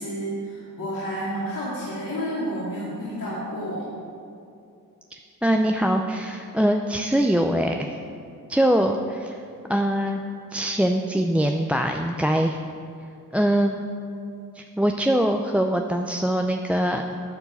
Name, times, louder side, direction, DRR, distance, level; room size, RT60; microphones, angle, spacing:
voice 1, 0.0-3.8, equal, 70° left, -9 dB, 2.5 m, -30 dB
voice 2, 5.4-7.9 8.5-9.4 9.7-10.2 10.5-12.6 13.3-13.8 14.5-17.2, right 1 dB, 5° right, 4 dB, 0.5 m, -23 dB
9.7 x 4.5 x 7.1 m, 2.5 s
cardioid pair, 45°, 34 cm